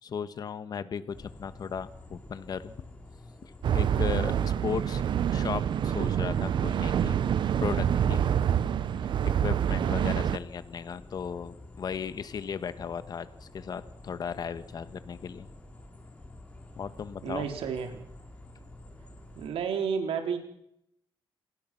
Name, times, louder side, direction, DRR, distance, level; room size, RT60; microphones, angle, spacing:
voice 1, 0.0-2.8 3.4-5.0 5.3-7.2 7.6-8.2 9.4-15.5 16.8-17.5, left 7 dB, 45° left, 12 dB, 1.5 m, -36 dB
sound 1, 1.1-19.5, left 2 dB, 15° left, 3.9 m, -49 dB
sound 2, 3.6-10.4, right 9 dB, 55° right, 0.9 m, -26 dB
voice 2, 17.2-18.0 19.4-20.4, right 6 dB, 85° right, 5 dB, 3.7 m, -31 dB
28.0 x 20.0 x 6.0 m, 0.75 s
cardioid pair, 155°, 9 cm